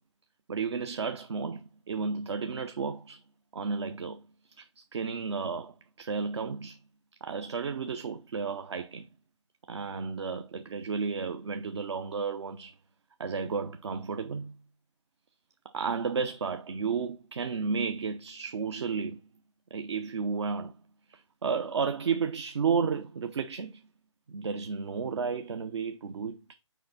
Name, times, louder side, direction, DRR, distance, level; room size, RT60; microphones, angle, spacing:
voice 1, 0.5-3.2 3.5-4.3 4.6-6.8 7.2-9.1 9.7-12.7 13.2-14.6 15.7-19.2 19.7-20.7 21.1-23.8 24.3-26.4, right 5 dB, 60° right, 0.6 m, -32 dB
6.4 x 4.5 x 3.9 m
figure-of-eight pair, 140°, 16 cm